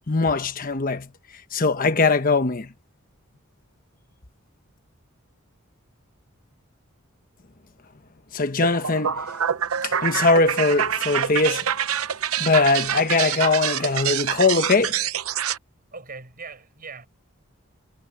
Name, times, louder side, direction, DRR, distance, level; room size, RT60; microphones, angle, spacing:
voice 1, 0.1-1.1 1.5-2.7 8.3-9.2 9.8-11.7 12.4-15.0, left 3 dB, 40° left, 1.1 m, -21 dB
sound 1, 8.6-15.6, right 8 dB, 80° right, 0.8 m, -26 dB
voice 2, 15.9-17.1, right 4 dB, 40° right, 7.7 m, -40 dB
head